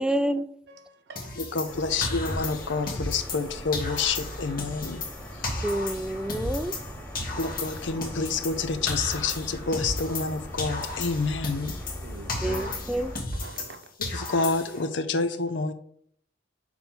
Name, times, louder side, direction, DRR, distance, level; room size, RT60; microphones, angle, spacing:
voice 1, 0.0-0.5 5.6-6.7 12.4-13.1, right 1 dB, 5° right, 0.3 m, -28 dB
voice 2, 0.7-2.4 12.0-13.0 13.3-13.8, right 2 dB, 65° right, 0.9 m, -45 dB
sound 1, 1.2-3.5 3.7-6.9 7.1-10.3 10.6-13.7 14.0-14.9, left 2 dB, 50° left, 1.4 m, -34 dB
voice 3, 1.4-5.0 5.3-5.4 7.4-11.8 14.0-15.7, left 4 dB, 80° left, 0.7 m, -28 dB
sound 2, 1.6-13.2, equal, 10° left, 0.9 m, -40 dB
5.9 x 4.4 x 3.8 m
head